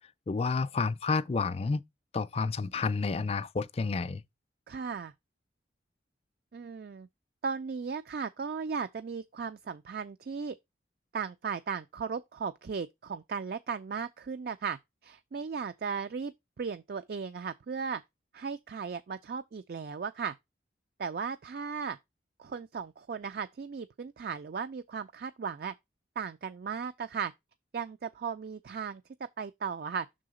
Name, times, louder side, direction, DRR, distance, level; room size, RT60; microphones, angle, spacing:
voice 1, 0.3-1.8 2.1-4.2, left 4 dB, 30° left, 0.4 m, -30 dB
voice 2, 4.7-5.1 6.5-7.1 7.4-10.6 11.1-18.0 18.3-20.3 21.0-22.0 22.4-25.7 26.2-27.3 27.7-29.0 29.4-30.1, right 6 dB, 55° right, 0.4 m, -36 dB
6.3 x 3.8 x 4.9 m
head